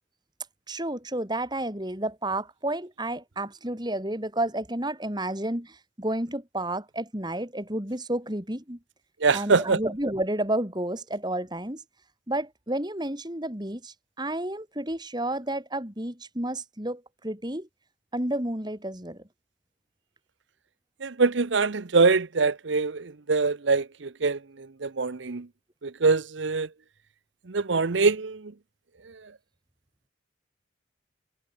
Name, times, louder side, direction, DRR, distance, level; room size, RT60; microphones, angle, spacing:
voice 1, 0.7-8.8 9.3-11.8 12.3-17.7 18.1-19.2, right 1 dB, 20° right, 3.9 m, -31 dB
voice 2, 9.2-9.8 21.0-24.4 24.8-25.5 25.8-26.7 27.5-28.4, right 4 dB, 70° right, 0.8 m, -23 dB
head